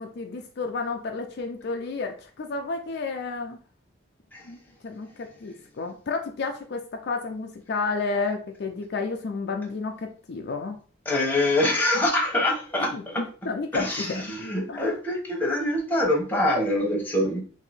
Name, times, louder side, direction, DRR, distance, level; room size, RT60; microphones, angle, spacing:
voice 1, 0.0-3.6 4.5-10.8 12.9-14.2 14.7-14.8, left 4 dB, 55° left, 3 dB, 0.4 m, -31 dB
voice 2, 11.0-13.2 13.7-17.4, left 1 dB, 10° left, -1 dB, 0.9 m, -25 dB
2.7 x 2.6 x 4.1 m, 0.40 s
head